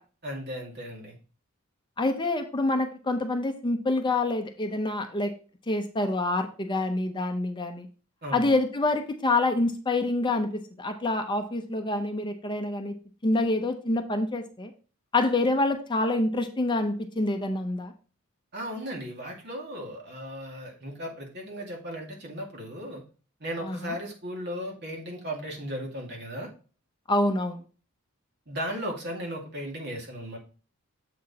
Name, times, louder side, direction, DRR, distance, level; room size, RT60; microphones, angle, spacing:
voice 1, 0.2-1.2 8.2-8.5 18.5-23.0 23.4-26.5 28.5-30.4, equal, 50° right, 0 dB, 2.1 m, -36 dB
voice 2, 2.0-5.3 5.7-7.9 8.3-10.5 10.8-12.9 13.2-14.7 15.1-17.9 23.6-23.9 27.1-27.6, left 2 dB, 20° left, 6 dB, 0.6 m, -26 dB
7.5 x 4.3 x 4.1 m, 0.38 s
head